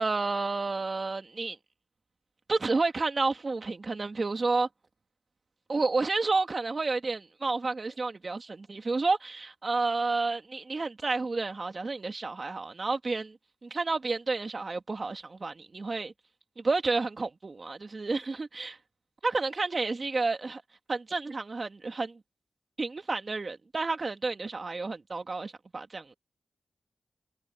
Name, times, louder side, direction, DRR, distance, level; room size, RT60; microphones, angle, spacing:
voice 1, 0.0-1.6 2.5-4.7 5.7-13.4 13.6-16.1 16.6-18.8 19.2-20.6 20.9-22.2 22.8-26.1, right 3 dB, 45° right, 2.2 m, -30 dB
cardioid pair, 70°, 0 cm